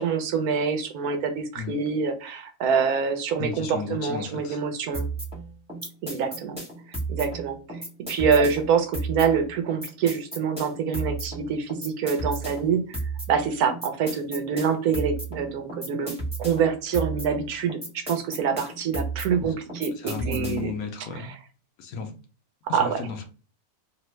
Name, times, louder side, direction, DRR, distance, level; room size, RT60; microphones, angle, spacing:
voice 1, 0.0-5.1 6.0-6.6 7.1-13.0 13.3-16.1 16.4-20.7 21.2-21.3 22.7-23.0, right 6 dB, 75° right, 1.1 m, -26 dB
voice 2, 3.4-4.6 19.4-19.6 20.0-21.3 21.8-22.2 22.7-23.2, left 4 dB, 75° left, 1.1 m, -34 dB
sound 1, 4.9-20.8, right 3 dB, 5° right, 0.8 m, -34 dB
3.3 x 2.0 x 3.1 m
omnidirectional pair, 1.6 m